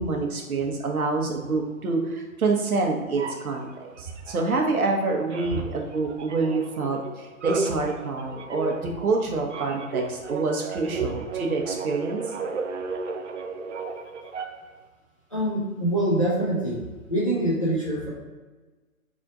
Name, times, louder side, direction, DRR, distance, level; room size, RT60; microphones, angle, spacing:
voice 1, 0.0-3.7 4.0-12.2, right 3 dB, 80° right, 1 dB, 1.1 m, -27 dB
sound 1, 3.2-5.0 5.3-14.8, right 4 dB, 55° right, 0.5 m, -34 dB
voice 2, 15.3-16.8 17.1-18.1, right 1 dB, 25° left, -6 dB, 0.6 m, -24 dB
4.2 x 2.6 x 4.8 m, 1.3 s
hypercardioid pair, 175°, 43 cm